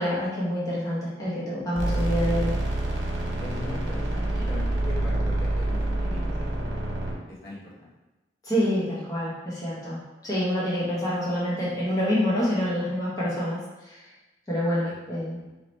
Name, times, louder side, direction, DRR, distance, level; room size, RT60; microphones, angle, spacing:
voice 1, 0.0-2.6 8.4-14.0 14.5-15.4, equal, 20° left, -9 dB, 0.9 m, -27 dB
sound 1, 1.8-7.1, right 1 dB, 85° right, 1.0 m, -27 dB
voice 2, 3.4-7.9 14.8-14.9 15.3-15.5, left 1 dB, 55° left, -7 dB, 1.0 m, -41 dB
3.1 x 2.8 x 4.2 m, 1.1 s
head